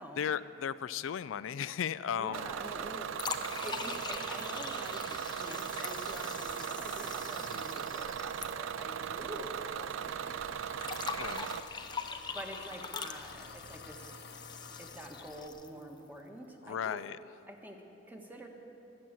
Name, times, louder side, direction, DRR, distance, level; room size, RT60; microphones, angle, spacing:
voice 1, 0.2-2.5 7.4-7.6 11.2-11.5 16.6-17.2, left 8 dB, 85° left, 15 dB, 0.4 m, -35 dB
voice 2, 2.2-3.1 3.5-10.6 11.0-11.1 12.3-14.1 14.8-17.0 17.5-18.5, equal, 10° right, 1 dB, 1.4 m, -47 dB
Bus / Engine, 2.3-11.6, right 8 dB, 75° right, 0.4 m, -38 dB
sound 1, 3.1-9.3 9.6-9.7 10.8-15.8, left 5 dB, 25° left, 0.7 m, -42 dB
Engine, 10.0-15.5, left 4 dB, 55° left, 0.8 m, -51 dB
22.0 x 7.8 x 7.5 m, 2.9 s
head